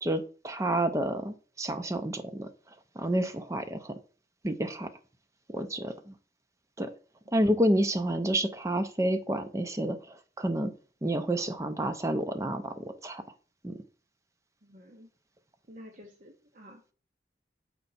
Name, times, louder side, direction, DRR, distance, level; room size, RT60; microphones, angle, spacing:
voice 1, 0.0-2.5 3.0-3.9 4.4-4.9 5.5-6.2 6.8-6.9 7.3-10.7 11.0-13.2 13.6-13.7, right 1 dB, 15° right, 8 dB, 0.5 m, -29 dB
voice 2, 14.6-15.1 15.7-16.9, equal, 45° right, 2 dB, 0.8 m, -51 dB
6.5 x 4.5 x 4.0 m, 0.39 s
head